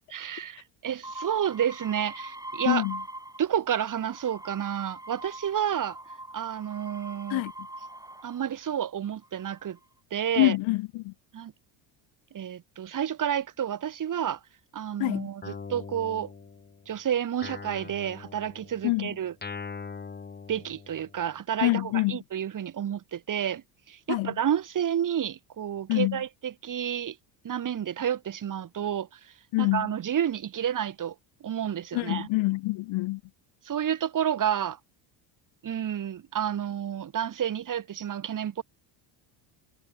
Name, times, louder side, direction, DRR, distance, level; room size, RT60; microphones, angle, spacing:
voice 1, 0.1-2.8 3.4-6.0 6.3-7.4 8.2-9.8 10.1-10.6 11.3-11.5 12.3-14.4 14.7-16.3 16.9-19.3 20.5-23.6 23.9-27.2 27.4-29.2 29.6-31.1 31.4-32.3 33.7-34.8 35.6-38.6, right 9 dB, 40° right, 2.3 m, -30 dB
sound 1, 1.0-3.6 3.9-8.5 9.2-9.8, right 1 dB, 5° right, 7.5 m, -42 dB
voice 2, 2.7-3.0 7.3-7.5 10.4-11.1 15.0-15.3 18.8-19.1 21.6-22.2 24.1-24.3 25.9-26.2 29.5-29.9 31.9-33.2, left 22 dB, 75° left, 2.2 m, -26 dB
Guitar, 15.4-16.9 17.4-21.3, left 4 dB, 20° left, 3.0 m, -42 dB
supercardioid pair, 105°, 48 cm